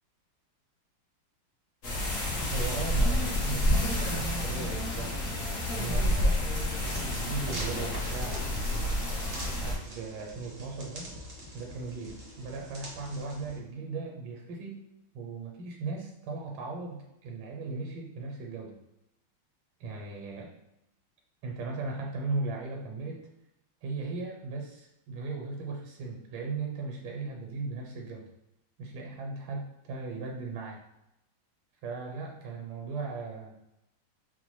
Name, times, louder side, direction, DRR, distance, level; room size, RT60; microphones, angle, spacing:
sound 1, 1.8-9.7, left 1 dB, 50° left, 1.0 m, -29 dB
voice 1, 2.5-6.1 7.0-8.5 9.4-11.1 11.5-14.8 15.1-18.8 19.8-20.5 21.4-23.2 23.8-28.3 28.8-30.8 31.8-33.5, right 3 dB, 85° right, 0 dB, 1.5 m, -37 dB
sound 2, 6.8-13.6, right 1 dB, 55° right, 0.6 m, -45 dB
4.2 x 2.2 x 3.0 m, 0.86 s
omnidirectional pair, 2.3 m